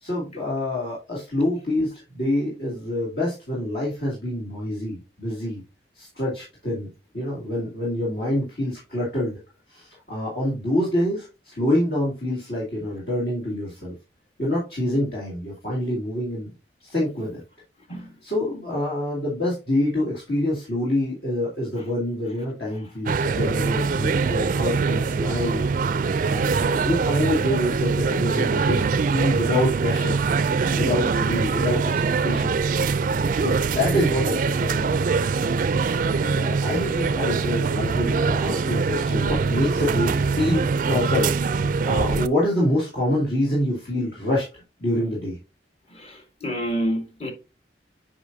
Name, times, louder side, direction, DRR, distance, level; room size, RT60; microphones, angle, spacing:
voice 1, 0.0-5.6 6.0-6.9 7.1-9.4 9.7-13.9 14.4-16.5 16.8-17.4 18.2-25.6 26.3-30.2 30.7-32.5 33.3-35.2 36.0-41.3 41.9-44.5 44.8-45.4, left 1 dB, 60° left, 2.6 m, -26 dB
sound 1, 23.1-42.3, right 4 dB, 50° right, 0.4 m, -23 dB
voice 2, 45.9-47.3, equal, 35° left, 1.5 m, -29 dB
8.2 x 5.3 x 2.7 m
head